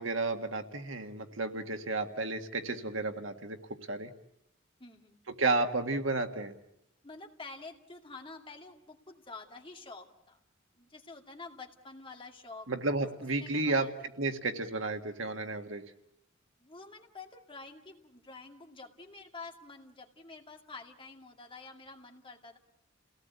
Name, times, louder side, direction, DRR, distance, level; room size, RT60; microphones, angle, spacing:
voice 1, 0.0-3.6 3.9-4.1 5.3-6.5 12.7-13.9 14.2-15.8, right 3 dB, 80° right, 6 dB, 1.8 m, -32 dB
voice 2, 2.7-3.3 4.8-5.2 7.0-10.4 10.7-12.7 13.0-13.1 13.4-13.9 16.6-22.6, left 3 dB, 25° left, 3 dB, 2.2 m, -48 dB
30.0 x 18.0 x 8.2 m, 0.81 s
head